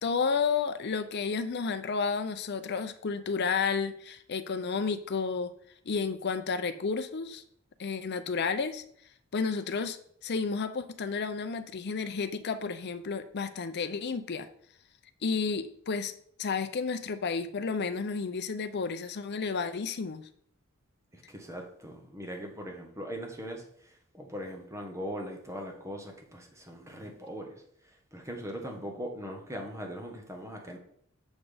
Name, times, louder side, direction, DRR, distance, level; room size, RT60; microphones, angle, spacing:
voice 1, 0.0-5.5 5.9-7.4 7.8-8.8 9.3-10.0 10.2-14.5 15.2-16.1 16.4-20.2, left 5 dB, 50° left, 11 dB, 0.5 m, -31 dB
voice 2, 21.1-23.6 24.1-27.6 28.1-30.8, equal, 15° right, 2 dB, 1.2 m, -40 dB
7.1 x 4.2 x 5.0 m, 0.65 s
head